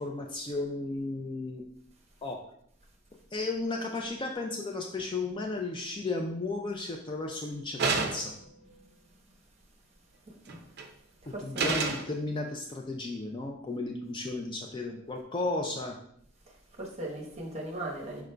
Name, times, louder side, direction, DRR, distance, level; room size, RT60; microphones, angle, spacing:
voice 1, 0.0-1.6 2.2-2.4 3.3-8.3 11.3-16.0, left 2 dB, 25° left, 2 dB, 0.3 m, -34 dB
sound 1, 7.8-8.4 10.5-10.9 11.6-12.1, right 4 dB, 50° right, 0.5 m, -29 dB
voice 2, 11.3-11.8 16.8-18.2, right 1 dB, 30° right, -1 dB, 1.0 m, -37 dB
5.0 x 4.8 x 2.2 m, 0.70 s
head